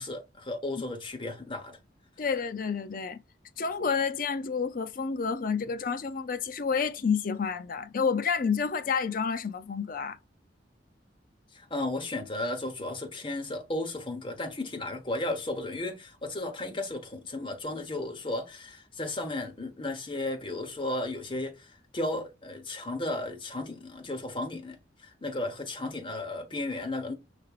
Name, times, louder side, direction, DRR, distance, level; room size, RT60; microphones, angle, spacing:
voice 1, 0.0-1.8 11.5-27.1, left 2 dB, 25° left, 1.0 m, -34 dB
voice 2, 2.2-3.2 3.6-10.2, left 5 dB, 45° left, 0.5 m, -29 dB
5.7 x 3.3 x 2.4 m
head